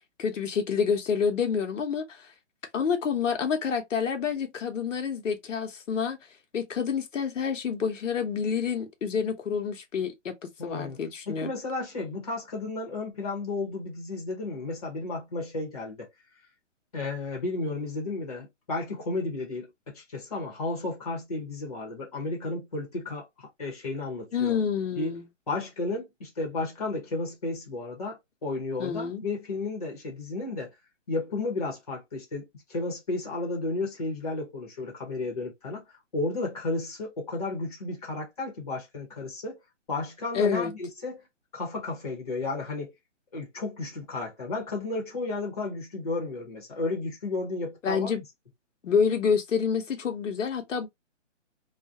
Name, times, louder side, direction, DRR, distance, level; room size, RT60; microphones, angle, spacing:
voice 1, 0.2-2.2 2.7-6.2 6.5-10.3 10.6-11.5 24.3-25.3 28.8-29.2 40.3-40.7 47.8-48.2 48.8-50.9, left 6 dB, 85° left, 0.8 m, -28 dB
voice 2, 10.6-11.0 11.3-16.1 16.9-24.6 25.0-25.2 25.5-30.7 31.1-35.8 36.1-39.6 39.9-41.2 41.5-42.9 43.3-48.2, left 3 dB, 30° left, 0.9 m, -33 dB
2.4 x 2.2 x 2.6 m
hypercardioid pair, 180°, 37 cm